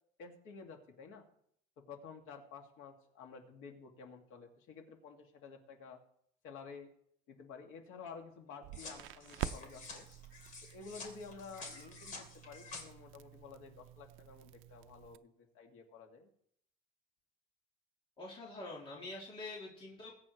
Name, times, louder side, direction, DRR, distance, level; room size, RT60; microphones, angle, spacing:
voice 1, 0.2-1.2 1.9-6.0 6.4-6.9 7.3-10.1 10.6-16.3, left 5 dB, 90° left, 3 dB, 2.2 m, -51 dB
Crackle, 8.6-15.2, right 13 dB, 80° right, 0.5 m, -48 dB
sound 1, 8.7-12.8, left 3 dB, 40° left, 2.5 m, -49 dB
voice 2, 18.2-20.1, left 2 dB, 25° left, -3 dB, 1.9 m, -46 dB
21.0 x 8.6 x 3.2 m, 0.68 s
cardioid pair, 170°, 20 cm